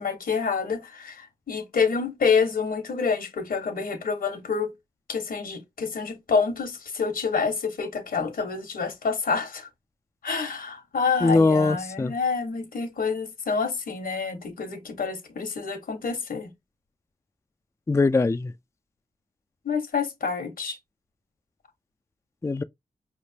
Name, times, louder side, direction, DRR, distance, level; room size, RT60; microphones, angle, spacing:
voice 1, 0.0-4.7 5.1-9.7 10.2-16.5 19.6-20.8, left 5 dB, 85° left, 1.3 m, -27 dB
voice 2, 11.2-12.1 17.9-18.5 22.4-22.6, left 3 dB, 20° left, 0.4 m, -21 dB
4.9 x 3.3 x 2.8 m
cardioid pair, 50°, 15 cm